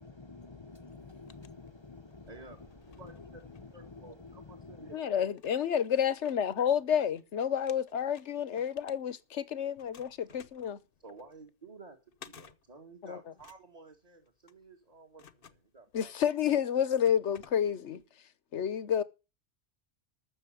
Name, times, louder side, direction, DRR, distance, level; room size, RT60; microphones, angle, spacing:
voice 1, 0.0-5.0, left 3 dB, 30° left, 0.7 m, -50 dB
sound 1, 0.9-2.2 2.7-4.4 4.9-5.0 5.3-7.2 7.5-9.4 9.8-18.0, left 7 dB, 55° left, 1.0 m, -58 dB
sound 2, 2.2-7.4, left 1 dB, 65° right, 3.7 m, -67 dB
voice 2, 2.3-3.4 3.7-5.2 11.0-16.1, right 3 dB, 35° right, 2.2 m, -53 dB
voice 3, 4.9-10.8 13.0-13.3 15.9-19.0, left 9 dB, 85° left, 1.3 m, -30 dB
13.5 x 6.5 x 9.2 m
omnidirectional pair, 1.2 m